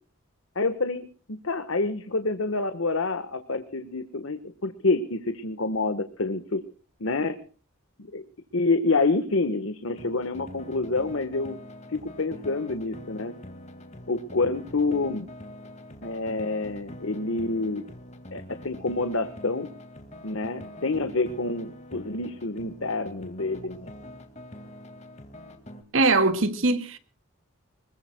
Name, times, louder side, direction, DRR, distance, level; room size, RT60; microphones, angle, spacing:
voice 1, 0.5-1.1 1.4-6.6 7.0-7.4 8.1-8.2 8.5-11.6 11.9-13.3 14.1-15.3 16.0-17.9 18.3-19.7 20.2-23.9, left 3 dB, 75° left, 1.3 m, -27 dB
sound 1, 9.9-25.8, left 1 dB, 30° left, 2.0 m, -44 dB
voice 2, 25.9-27.0, right 3 dB, 70° right, 1.9 m, -21 dB
25.5 x 21.5 x 2.3 m
head